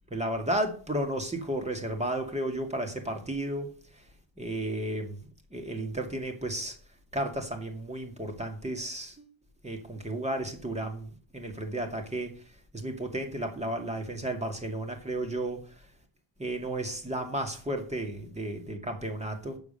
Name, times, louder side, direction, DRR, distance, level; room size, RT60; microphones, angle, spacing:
voice 1, 0.1-3.7 4.4-6.8 7.1-9.3 9.6-12.3 12.7-15.6 16.4-19.6, right 1 dB, 15° right, 2.2 m, -33 dB
9.6 x 7.4 x 6.8 m
wide cardioid pair, 170°, 48 cm